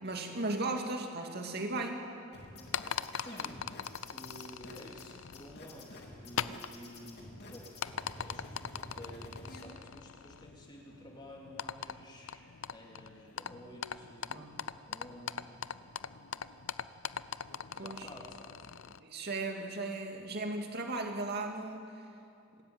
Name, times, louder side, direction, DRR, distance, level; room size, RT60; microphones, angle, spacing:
voice 1, 0.0-2.1 14.3-14.5 17.8-18.1 19.0-21.9, right 2 dB, 55° right, 3 dB, 2.4 m, -36 dB
sound 1, 2.3-9.6, left 2 dB, 55° left, 2.9 m, -49 dB
sound 2, 2.5-19.0, left 7 dB, 80° left, 0.6 m, -42 dB
voice 2, 3.2-3.8 4.1-7.6 8.2-14.6 14.9-15.7 17.7-18.7, equal, 25° left, -1 dB, 3.6 m, -51 dB
26.5 x 13.0 x 9.0 m, 2.5 s
head